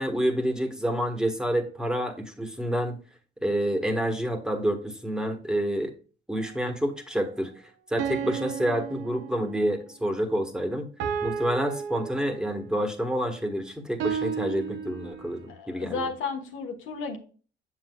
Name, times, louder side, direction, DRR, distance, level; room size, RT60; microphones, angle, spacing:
voice 1, 0.0-3.0 3.4-5.9 6.3-7.5 7.9-10.9 11.2-16.1, equal, 5° right, 4 dB, 1.4 m, -28 dB
sound 1, 6.4-6.5 8.0-9.7 11.0-12.7 14.0-15.5, right 7 dB, 80° right, 0.8 m, -33 dB
voice 2, 15.5-17.2, left 4 dB, 85° left, 4 dB, 1.4 m, -33 dB
7.4 x 7.2 x 2.3 m, 0.37 s
cardioid pair, 90°, 20 cm